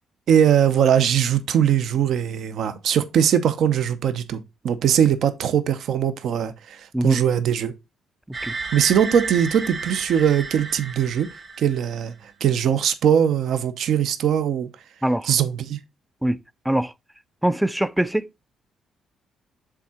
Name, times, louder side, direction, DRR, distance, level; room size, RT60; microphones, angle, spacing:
voice 1, 0.3-7.7 8.7-11.3 11.6-14.7 15.2-15.8, right 9 dB, 70° right, 0.6 m, -21 dB
sound 1, 8.3-12.1, right 4 dB, 40° right, 1.7 m, -33 dB
voice 2, 17.4-18.2, right 1 dB, 5° right, 0.3 m, -22 dB
7.0 x 3.7 x 4.2 m
cardioid pair, 90°, 0 cm